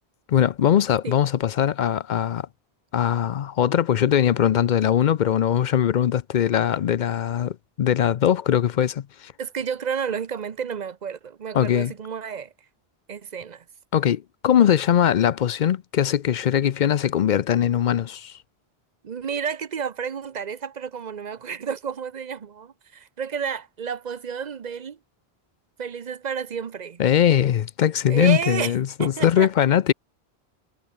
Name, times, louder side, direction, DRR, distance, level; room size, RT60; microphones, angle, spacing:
voice 1, 0.3-2.5 2.9-9.3 11.5-11.9 13.9-18.3 27.0-29.9, left 10 dB, 55° left, 0.6 m, -21 dB
voice 2, 9.4-12.5 13.1-13.6 19.0-25.0 25.8-27.0 28.1-29.7, right 7 dB, 45° right, 0.8 m, -31 dB
omnidirectional pair, 1.1 m